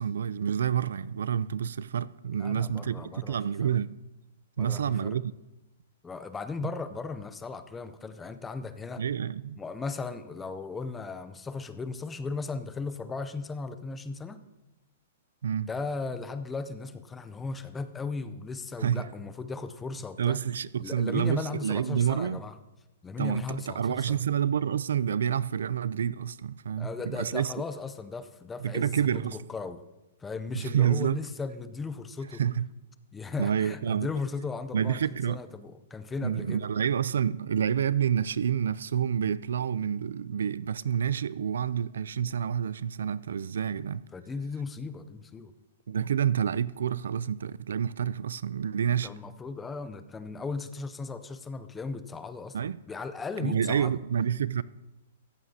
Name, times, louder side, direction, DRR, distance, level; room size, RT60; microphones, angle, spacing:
voice 1, 0.0-4.0 4.6-5.3 6.6-6.7 9.0-9.6 15.4-15.7 18.8-19.0 20.2-22.4 23.2-27.5 28.6-29.4 30.5-31.2 32.4-32.7 33.4-34.1 34.7-35.4 36.2-44.0 45.9-49.1 52.5-52.8 53.4-54.6, right 8 dB, 90° right, 0.4 m, -28 dB
voice 2, 2.4-3.4 3.6-3.7 4.6-5.2 6.0-9.0 9.5-14.4 15.7-20.4 20.8-22.6 23.0-24.2 26.8-29.8 30.2-32.4 33.1-35.0 35.3-36.7 44.1-45.5 48.9-54.0, left 4 dB, 10° left, 0.5 m, -37 dB
14.5 x 14.5 x 2.8 m
hypercardioid pair, 175°, 0 cm